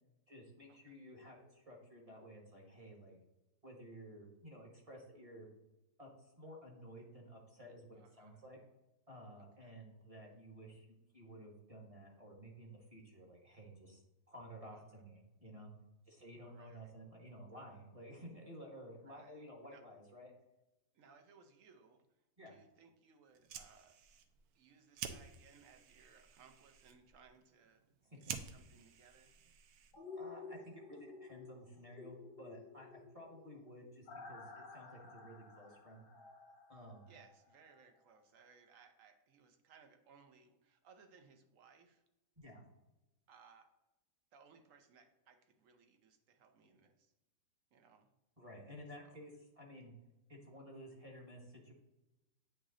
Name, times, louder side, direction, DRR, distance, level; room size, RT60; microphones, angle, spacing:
voice 1, 0.3-3.2 3.6-5.5 6.0-8.6 9.1-14.0 14.3-15.7 16.1-20.3 22.4-22.5 28.1-28.3 30.1-36.1 36.7-37.1 42.4-42.6 48.4-49.3 49.6-49.9 50.3-51.7, equal, 25° right, 0 dB, 1.1 m, -54 dB
voice 2, 7.9-8.4 9.6-9.7 14.7-15.0 16.4-16.9 19.0-19.4 19.7-19.8 20.9-22.0 22.5-24.0 24.5-29.3 37.1-42.0 43.3-43.7 44.3-47.1 47.7-48.1 49.0-49.2, right 5 dB, 60° right, 6 dB, 1.1 m, -64 dB
Fire, 23.3-30.2, right 8 dB, 75° right, 1.1 m, -51 dB
sound 1, 29.9-37.8 38.2-38.3, left 4 dB, 50° left, 0.7 m, -53 dB
8.8 x 3.1 x 3.8 m, 1.0 s
omnidirectional pair, 1.7 m